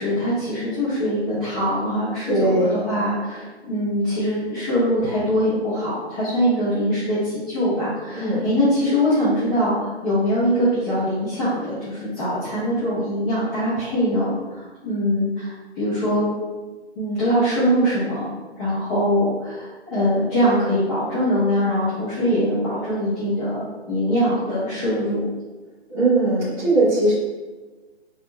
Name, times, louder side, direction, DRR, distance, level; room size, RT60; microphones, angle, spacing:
voice 1, 0.0-16.3 16.9-18.3 18.6-25.3, equal, 20° left, -14 dB, 1.2 m, -22 dB
voice 2, 2.3-2.8 8.1-8.4 25.9-27.1, right 2 dB, 15° right, -9 dB, 0.8 m, -19 dB
5.0 x 3.5 x 2.2 m, 1.3 s
figure-of-eight pair, 140°, 34 cm